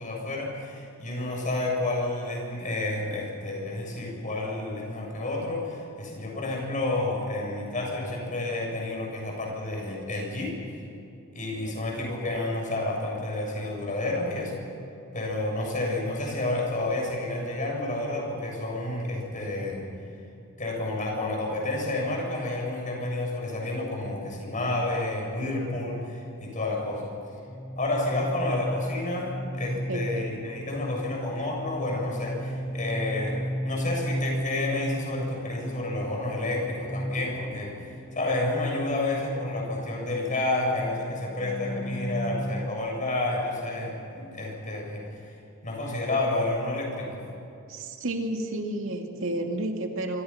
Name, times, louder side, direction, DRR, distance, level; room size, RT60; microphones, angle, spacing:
voice 1, 0.0-10.6 11.3-14.6 15.1-19.8 20.6-27.1 27.8-45.4 45.6-47.2, left 2 dB, 35° left, -1 dB, 7.5 m, -30 dB
sound 1, 27.5-42.7, equal, 15° left, 1.0 m, -34 dB
voice 2, 29.9-30.2 47.7-50.2, right 1 dB, 65° right, 3 dB, 2.4 m, -31 dB
26.5 x 26.5 x 5.8 m, 2.8 s
head